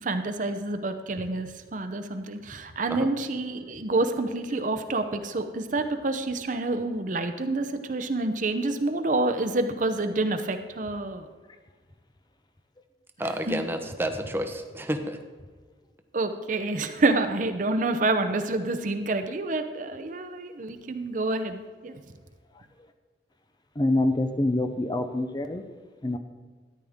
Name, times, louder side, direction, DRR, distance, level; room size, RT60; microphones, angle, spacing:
voice 1, 0.0-11.3 13.5-13.6 16.1-22.0, right 2 dB, 45° right, 8 dB, 0.7 m, -28 dB
voice 2, 13.2-15.2, right 1 dB, 15° right, 6 dB, 0.8 m, -30 dB
voice 3, 23.8-25.6 26.0-26.2, left 1 dB, 25° left, 8 dB, 0.6 m, -25 dB
13.5 x 10.0 x 3.6 m, 1.5 s
head